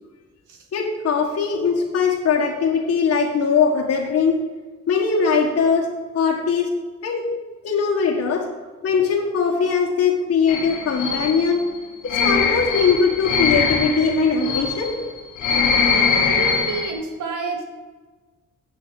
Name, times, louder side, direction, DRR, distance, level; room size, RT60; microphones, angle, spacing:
voice 1, 0.7-4.4 4.9-5.9 6.1-6.7 7.0-7.3 7.6-8.5 8.8-11.6 12.0-15.0, left 5 dB, 50° left, -2 dB, 1.4 m, -20 dB
sound 1, 10.5-16.9, left 5 dB, 85° left, 1.4 m, -22 dB
voice 2, 16.2-17.6, right 4 dB, 85° right, 3 dB, 1.9 m, -29 dB
7.4 x 7.0 x 6.3 m, 1.3 s
cardioid pair, 90°, 30 cm